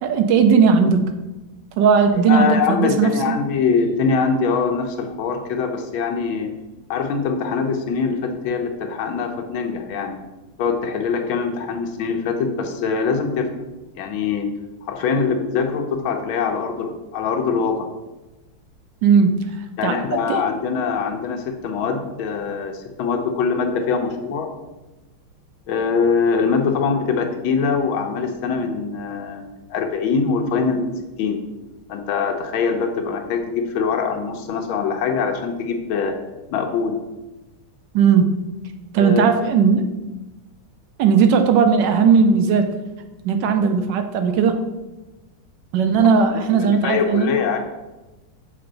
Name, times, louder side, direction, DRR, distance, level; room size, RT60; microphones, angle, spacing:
voice 1, 0.0-1.1 1.8-3.4 19.0-20.4 37.9-38.4 38.9-39.9 41.0-42.7 43.2-44.7 45.7-47.4, right 5 dB, 70° right, 7 dB, 1.1 m, -17 dB
voice 2, 2.3-6.5 6.9-10.2 10.6-13.5 13.9-14.5 14.8-17.9 19.8-24.5 25.7-30.9 31.2-31.4 31.9-36.1 36.5-37.0 39.0-39.4 46.5-47.6, left 5 dB, 75° left, 5 dB, 1.6 m, -23 dB
6.8 x 4.4 x 3.9 m, 1.1 s
omnidirectional pair, 2.3 m